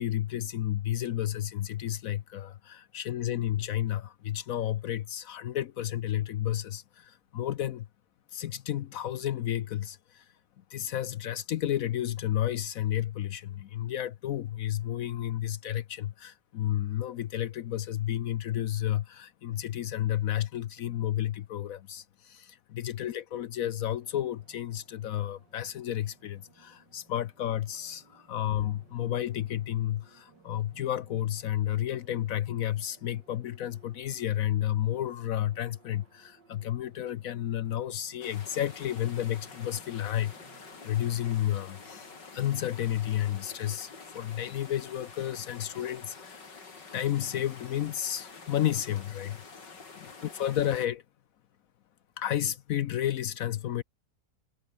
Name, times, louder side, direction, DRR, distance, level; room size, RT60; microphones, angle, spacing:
voice 1, 0.0-7.9 8.3-10.3 10.7-46.5 46.9-51.0 52.2-53.8, left 12 dB, 65° left, 0.9 m, -32 dB
sound 1, 24.0-43.6, right 5 dB, 85° right, 3.4 m, -62 dB
sound 2, 38.2-50.9, left 4 dB, 80° left, 4.0 m, -48 dB
omnidirectional pair, 1.9 m